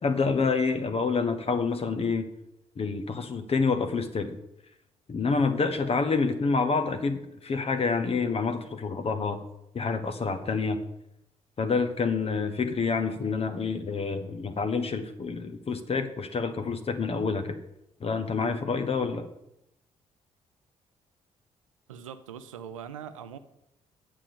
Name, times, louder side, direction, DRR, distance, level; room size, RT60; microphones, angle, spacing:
voice 1, 0.0-2.3 2.8-4.4 5.1-9.4 9.7-10.8 11.6-17.6 18.0-19.3, left 4 dB, 35° left, 8 dB, 1.1 m, -27 dB
voice 2, 21.9-23.4, right 8 dB, 80° right, 11 dB, 0.6 m, -41 dB
9.0 x 7.0 x 6.8 m, 0.83 s
figure-of-eight pair, 40°, 17 cm